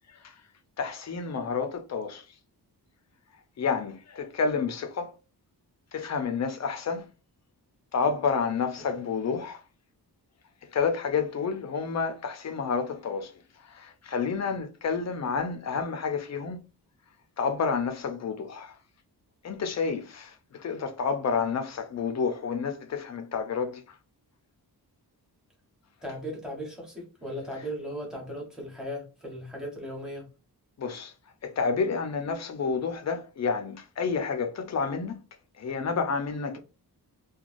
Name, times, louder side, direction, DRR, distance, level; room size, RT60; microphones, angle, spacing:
voice 1, 0.8-2.3 3.6-5.1 5.9-7.1 7.9-9.6 10.7-16.6 17.4-18.8 19.4-24.0 30.8-31.1 31.4-35.2 35.6-36.6, left 5 dB, 45° left, 0.5 m, -30 dB
voice 2, 26.0-30.3, equal, ahead, 1.0 m, -37 dB
3.0 x 2.3 x 2.5 m
wide cardioid pair, 145°, 40 cm